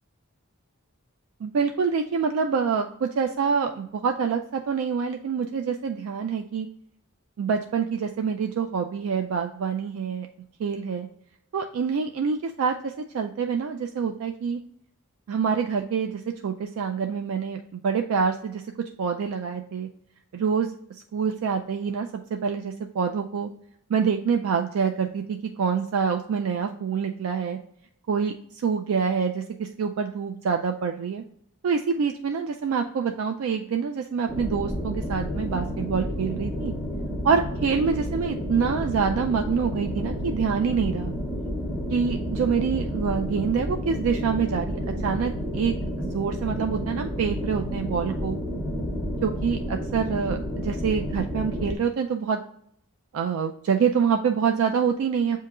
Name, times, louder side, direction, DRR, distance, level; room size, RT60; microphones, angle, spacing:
voice 1, 1.4-6.7 7.4-10.3 10.6-11.1 11.5-14.6 15.3-18.6 19.0-19.9 20.3-20.7 21.1-23.5 23.9-27.6 28.1-31.2 31.6-36.7 37.2-41.1 41.9-48.4 49.2-52.4 53.1-55.4, right 6 dB, 70° right, 4 dB, 0.3 m, -26 dB
sound 1, 34.3-51.8, equal, 10° right, 0.6 m, -30 dB
7.5 x 2.8 x 2.3 m, 0.70 s
head